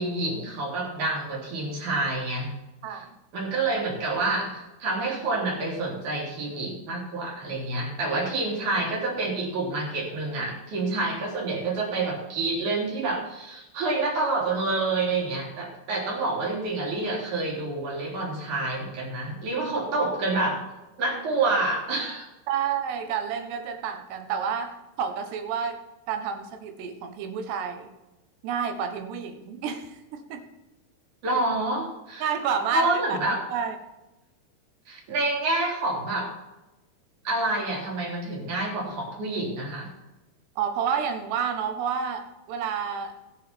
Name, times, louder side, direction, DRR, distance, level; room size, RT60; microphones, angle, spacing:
voice 1, 0.0-2.5 3.3-20.6 21.0-22.3 31.2-32.3 32.7-33.4 34.9-36.3 37.2-39.9, right 2 dB, 50° right, -2 dB, 4.7 m, -28 dB
voice 2, 22.5-25.8 26.1-27.9 28.4-30.5 32.2-33.8 40.6-43.2, right 7 dB, 80° right, 7 dB, 3.4 m, -30 dB
20.0 x 7.2 x 4.4 m, 1.0 s
omnidirectional pair, 4.8 m